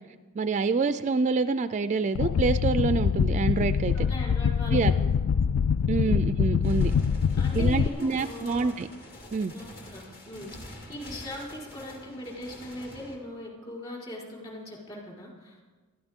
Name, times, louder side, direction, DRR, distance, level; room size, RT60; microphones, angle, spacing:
voice 1, 0.4-4.1 4.7-4.9 5.9-6.9 7.5-8.9 9.3-9.5, right 4 dB, 35° right, 11 dB, 0.3 m, -26 dB
sound 1, 2.2-7.9, left 6 dB, 65° left, 0.3 m, -24 dB
voice 2, 3.9-5.1 5.9-6.2 7.3-8.7 9.5-15.6, left 1 dB, 25° left, -2 dB, 4.4 m, -40 dB
sound 2, 6.6-13.2, left 1 dB, 45° left, 2.4 m, -46 dB
21.0 x 13.5 x 3.6 m, 1.3 s
head